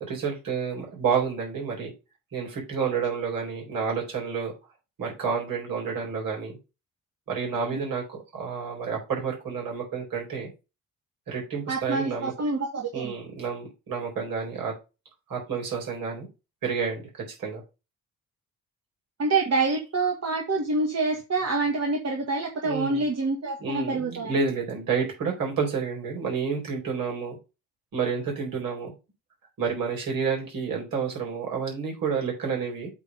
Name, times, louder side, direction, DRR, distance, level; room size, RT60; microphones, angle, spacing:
voice 1, 0.1-1.9 2.3-4.5 5.0-6.5 7.3-10.5 11.3-12.3 12.9-14.7 15.3-16.3 16.6-17.6 22.6-23.1 23.6-27.4 27.9-28.9 29.6-32.9, right 5 dB, 60° right, 0 dB, 4.5 m, -29 dB
voice 2, 11.7-13.1 19.2-24.3, right 3 dB, 40° right, 2 dB, 1.8 m, -26 dB
8.3 x 3.7 x 5.3 m, 0.28 s
figure-of-eight pair, 40°, 39 cm